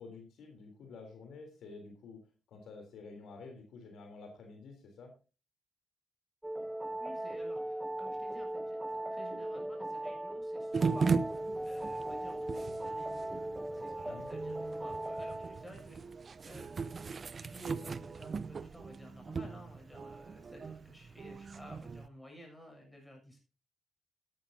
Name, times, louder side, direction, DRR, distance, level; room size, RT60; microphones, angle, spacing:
voice 1, 0.0-2.2 2.5-5.1 14.0-14.3, left 4 dB, 80° left, 4 dB, 3.4 m, -50 dB
sound 1, 6.4-15.6, right 1 dB, 10° right, 0.7 m, -38 dB
voice 2, 6.8-16.1 16.4-16.9 17.4-23.4, equal, 10° left, 1 dB, 7.3 m, -53 dB
sound 2, 10.7-22.1, right 5 dB, 45° right, 0.7 m, -38 dB
13.0 x 11.5 x 2.8 m, 0.32 s
cardioid pair, 85°, 0 cm